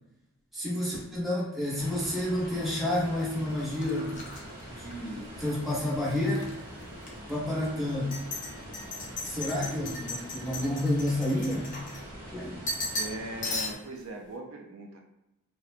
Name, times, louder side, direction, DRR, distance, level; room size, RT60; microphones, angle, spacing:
voice 1, 0.5-4.2 4.8-6.5 7.3-8.2 9.3-11.7 12.3-12.5, left 1 dB, ahead, -7 dB, 0.7 m, -30 dB
sound 1, 1.6-5.6 5.9-6.5 7.0-7.1 7.9-12.3 12.7-13.2 13.4-14.0, left 2 dB, 35° left, 0.5 m, -38 dB
sound 2, 1.8-13.7, right 1 dB, 40° right, 0.8 m, -44 dB
voice 2, 12.9-15.0, right 2 dB, 70° right, 2 dB, 0.4 m, -39 dB
2.6 x 2.0 x 2.4 m, 0.94 s
head